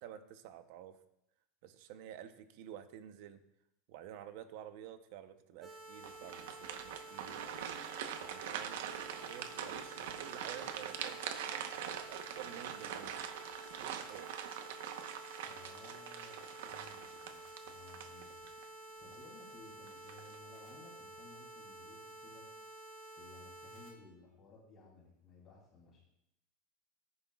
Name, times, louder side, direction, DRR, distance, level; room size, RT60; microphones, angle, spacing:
voice 1, 0.0-1.0 1.6-3.4 3.9-7.4 8.2-8.8 9.2-11.2 11.5-11.6 11.9-13.2 13.8-14.3, right 10 dB, 50° right, 10 dB, 0.8 m, -50 dB
sound 1, 5.6-23.9, right 2 dB, 15° right, 2.1 m, -51 dB
sound 2, 6.0-18.7 19.1-19.3 19.9-20.4, right 9 dB, 80° right, 1.0 m, -43 dB
voice 2, 15.4-17.4 17.7-18.5 19.0-22.6 23.1-26.0, left 3 dB, 25° left, -4 dB, 2.9 m, -58 dB
19.5 x 9.7 x 2.4 m, 0.80 s
supercardioid pair, 175°, 0 cm